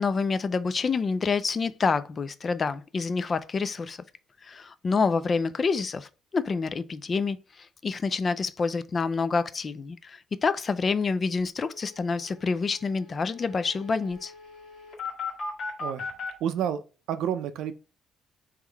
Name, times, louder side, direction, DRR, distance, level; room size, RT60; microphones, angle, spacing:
voice 1, 0.0-4.0 4.4-14.3, left 4 dB, 25° left, 0.3 m, -27 dB
sound 1, 11.0-11.1 11.4-11.5 11.7-16.3, left 4 dB, 50° left, 1.6 m, -38 dB
voice 2, 16.4-16.8 17.1-17.7, right 9 dB, 75° right, 0.5 m, -29 dB
3.7 x 3.0 x 4.5 m
cardioid pair, 165°, 0 cm